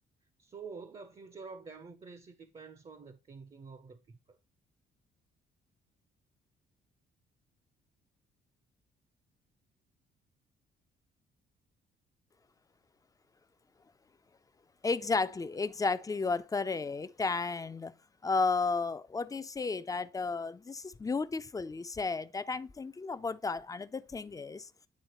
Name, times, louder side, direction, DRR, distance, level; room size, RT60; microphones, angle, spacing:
voice 1, 0.4-4.4, right 4 dB, 30° right, 0.6 m, -48 dB
voice 2, 14.8-17.9 18.2-24.7, left 4 dB, 15° left, 0.4 m, -33 dB
9.6 x 3.7 x 2.9 m
cardioid pair, 90°, 20 cm